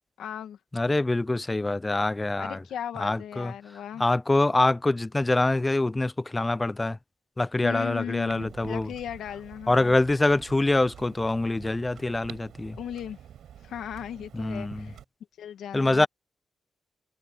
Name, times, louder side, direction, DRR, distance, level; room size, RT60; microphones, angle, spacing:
voice 1, 0.2-0.6 2.4-4.0 7.6-10.0 12.7-13.2 13.6-15.0 15.4-16.1, left 10 dB, 85° left, 2.0 m, -37 dB
voice 2, 0.7-2.6 3.0-3.5 4.0-7.0 7.4-8.9 9.7-12.8 14.4-14.9 15.7-16.1, left 2 dB, 20° left, 0.6 m, -25 dB
Clock, 8.3-15.0, right 10 dB, 80° right, 6.7 m, -47 dB
cardioid pair, 65°, 0 cm